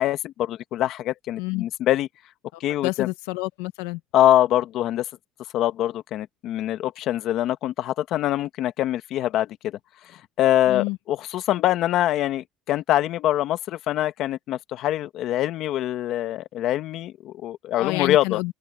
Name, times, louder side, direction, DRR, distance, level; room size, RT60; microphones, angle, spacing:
voice 1, 0.0-2.1 2.6-3.1 4.1-5.0 5.5-9.8 10.1-18.4, left 13 dB, 60° left, 1.3 m, -24 dB
voice 2, 2.5-4.0 10.7-11.0 17.7-18.5, left 23 dB, 90° left, 1.1 m, -29 dB
open air
supercardioid pair, 110°, 0 cm